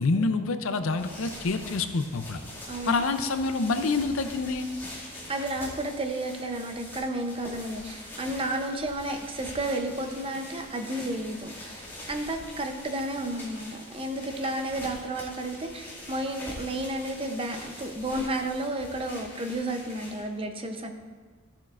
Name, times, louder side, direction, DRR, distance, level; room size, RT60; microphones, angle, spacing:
voice 1, 0.0-2.4 2.9-4.7, left 3 dB, 70° left, 9 dB, 0.5 m, -27 dB
sound 1, 0.8-20.4, left 1 dB, 10° left, 2.2 m, -44 dB
voice 2, 2.7-3.0 5.3-11.8 12.1-20.9, right 1 dB, 25° right, 5 dB, 0.7 m, -32 dB
14.0 x 7.3 x 2.5 m, 1.5 s
head